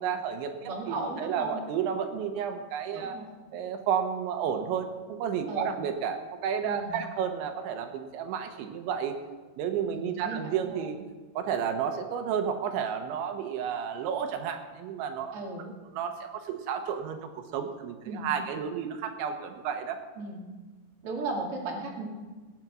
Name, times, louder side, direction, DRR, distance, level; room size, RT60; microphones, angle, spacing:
voice 1, 0.0-3.2 3.5-9.2 9.6-11.0 11.3-17.2 17.5-20.0, right 7 dB, 80° right, 6 dB, 3.4 m, -32 dB
voice 2, 0.6-1.6 2.9-3.2 5.5-5.7 6.6-7.1 9.9-10.8 15.3-15.7 18.0-18.4 20.2-20.4 21.0-22.0, right 2 dB, 40° right, -1 dB, 2.5 m, -36 dB
18.5 x 9.1 x 6.2 m, 1.3 s
omnidirectional pair, 5.2 m